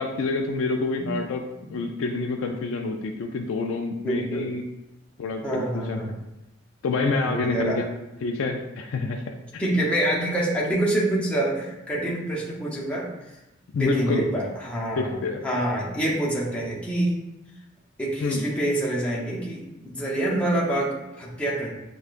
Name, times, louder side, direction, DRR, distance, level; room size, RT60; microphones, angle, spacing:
voice 1, 0.0-1.4 1.7-4.6 5.2-6.2 6.8-7.9 8.2-9.6 13.7-14.3 15.0-15.5 18.2-18.4, left 3 dB, 75° left, 3 dB, 0.4 m, -27 dB
voice 2, 4.0-4.5 5.4-6.1 7.2-7.8 9.6-13.1 13.7-15.1 15.4-17.1 18.0-21.7, right 1 dB, 5° left, -6 dB, 0.7 m, -26 dB
6.4 x 2.3 x 2.4 m, 0.95 s
head